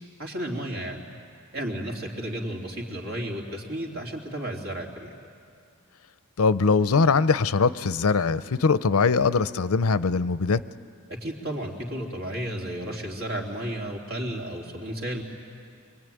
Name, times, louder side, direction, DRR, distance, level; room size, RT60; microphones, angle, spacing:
voice 1, 0.2-1.0 1.5-5.1 11.1-15.2, right 1 dB, 75° right, 0 dB, 3.4 m, -33 dB
voice 2, 6.4-10.6, left 4 dB, 90° left, 15 dB, 0.6 m, -22 dB
24.0 x 23.5 x 9.3 m, 2.3 s
head